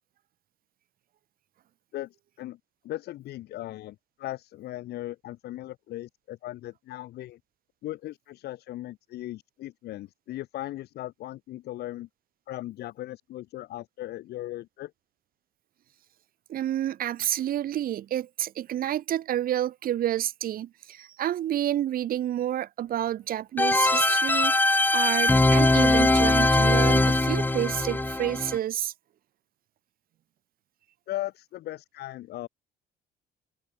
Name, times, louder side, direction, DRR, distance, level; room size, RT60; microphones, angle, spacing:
voice 1, 1.9-2.6 2.8-7.4 7.8-12.1 12.5-14.9 31.1-32.5, left 15 dB, 75° left, 3.6 m, -38 dB
voice 2, 16.5-24.5 24.9-28.9, right 12 dB, 60° right, 1.7 m, -29 dB
sound 1, 23.6-28.6, left 2 dB, 10° left, 3.0 m, -21 dB
cardioid pair, 110°, 17 cm